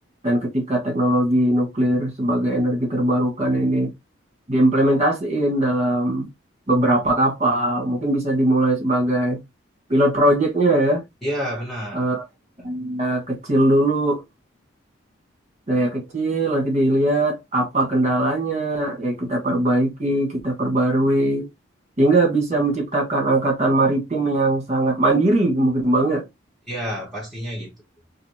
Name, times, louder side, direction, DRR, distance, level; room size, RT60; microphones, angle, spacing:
voice 1, 0.2-3.9 4.5-6.3 6.7-9.4 9.9-11.0 11.9-12.2 12.6-14.2 15.7-21.5 22.0-26.2, right 1 dB, 35° right, 1.5 m, -20 dB
voice 2, 11.2-12.0 12.6-12.8 26.7-27.7, equal, ahead, 1.1 m, -29 dB
4.0 x 2.6 x 3.0 m
head